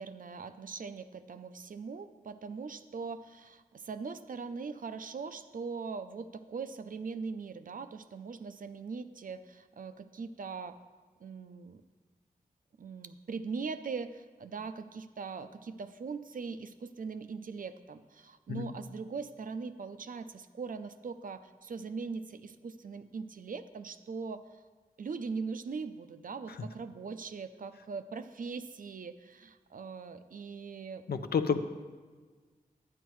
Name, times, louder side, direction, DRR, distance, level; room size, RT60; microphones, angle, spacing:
voice 1, 0.0-10.8 11.2-11.8 12.8-24.6 25.0-31.1, right 5 dB, 60° right, 11 dB, 0.5 m, -41 dB
voice 2, 31.1-31.6, left 6 dB, 85° left, 9 dB, 0.5 m, -30 dB
11.0 x 9.1 x 3.1 m, 1.4 s
wide cardioid pair, 105°, 16 cm